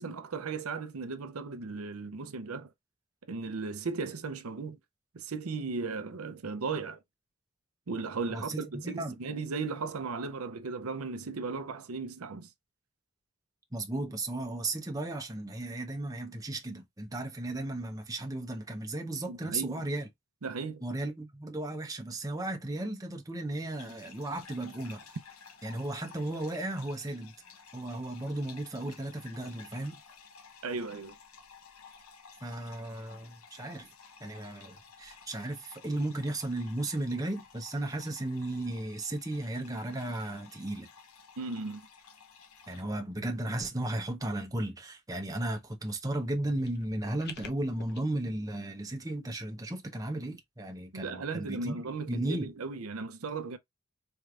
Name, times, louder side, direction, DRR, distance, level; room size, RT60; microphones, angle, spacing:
voice 1, 0.0-2.7 3.3-4.8 5.1-7.0 7.9-12.5 19.3-19.8 20.4-20.8 30.6-31.2 41.4-41.8 50.9-53.6, right 4 dB, 75° right, 0.7 m, -36 dB
voice 2, 8.3-9.2 13.7-20.1 20.8-25.0 25.6-27.3 27.7-30.0 32.4-33.9 34.2-40.9 42.7-51.8 52.1-52.5, right 1 dB, 15° right, 0.9 m, -35 dB
sound 1, 23.7-42.8, left 6 dB, 75° left, 1.0 m, -54 dB
sound 2, 46.1-48.0, left 5 dB, 50° left, 0.8 m, -48 dB
4.5 x 3.3 x 2.5 m
head